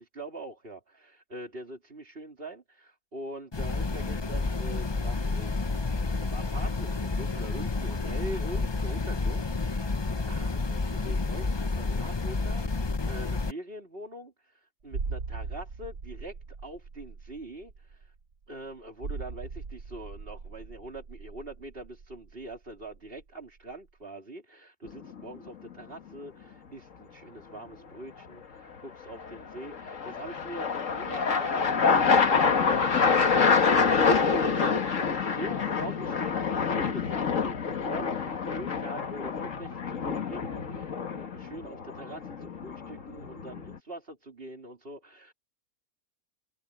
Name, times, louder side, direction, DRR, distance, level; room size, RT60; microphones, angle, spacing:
voice 1, 0.1-18.0 18.5-31.7 32.0-45.3, right 1 dB, 40° right, 4.0 m, -43 dB
sound 1, 3.5-13.5, left 3 dB, 25° left, 0.7 m, -30 dB
sound 2, 14.9-23.3 23.6-23.7, right 4 dB, 85° right, 2.3 m, -40 dB
sound 3, 24.9-25.4 29.2-43.8, left 5 dB, 60° left, 1.9 m, -27 dB
open air
omnidirectional pair, 1.5 m